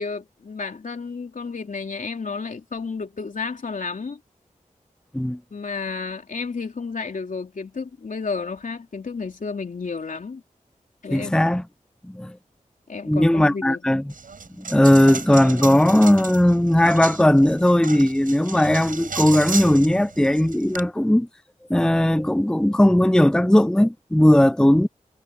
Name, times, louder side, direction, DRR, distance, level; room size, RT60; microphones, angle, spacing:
voice 1, 0.0-4.2 5.5-10.4 11.0-11.3 12.9-13.8, left 4 dB, 70° left, 3.2 m, -31 dB
voice 2, 11.1-11.6 12.1-12.3 13.1-14.0 14.6-21.3 21.7-24.9, left 1 dB, 5° left, 0.6 m, -17 dB
Coin (dropping), 14.1-20.8, right 4 dB, 80° right, 7.6 m, -34 dB
wide cardioid pair, 80°, 14 cm